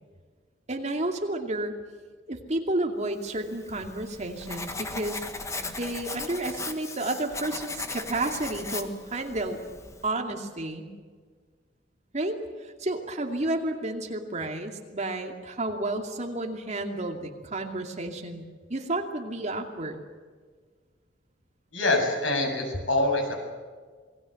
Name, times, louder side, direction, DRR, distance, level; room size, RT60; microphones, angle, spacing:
voice 1, 0.7-1.8 2.3-5.2 5.6-9.6 10.0-10.9 12.1-18.4 18.7-20.0, right 2 dB, 35° right, 3 dB, 2.6 m, -31 dB
Writing, 3.4-10.1, left 3 dB, 15° left, 1.5 m, -38 dB
voice 2, 21.7-23.3, left 2 dB, 85° left, 2 dB, 7.4 m, -25 dB
27.5 x 20.5 x 7.8 m, 1.5 s
head